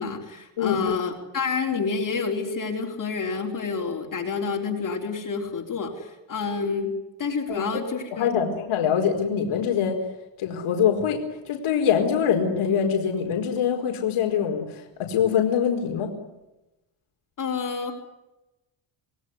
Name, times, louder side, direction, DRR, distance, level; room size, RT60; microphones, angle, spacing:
voice 1, 0.0-6.9 7.2-8.5 17.4-17.9, left 5 dB, 40° left, 1 dB, 4.0 m, -28 dB
voice 2, 0.6-1.0 7.5-7.6 8.1-10.0 10.4-11.2 11.5-16.1, left 8 dB, 80° left, 2 dB, 4.7 m, -24 dB
27.5 x 19.0 x 9.7 m, 0.99 s
cardioid pair, 150°, 49 cm